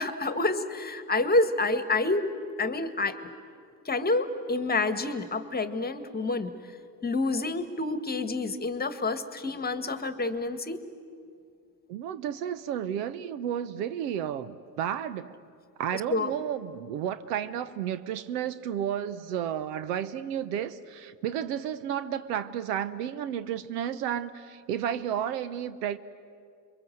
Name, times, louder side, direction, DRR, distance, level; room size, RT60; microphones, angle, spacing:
voice 1, 0.0-2.3 2.6-3.2 3.8-6.5 7.0-10.8 15.9-16.3, left 2 dB, 20° left, 10 dB, 1.6 m, -28 dB
voice 2, 11.9-15.4 15.8-26.0, right 9 dB, 70° right, 15 dB, 1.0 m, -32 dB
28.5 x 23.0 x 7.8 m, 2.3 s
hypercardioid pair, 70°, 49 cm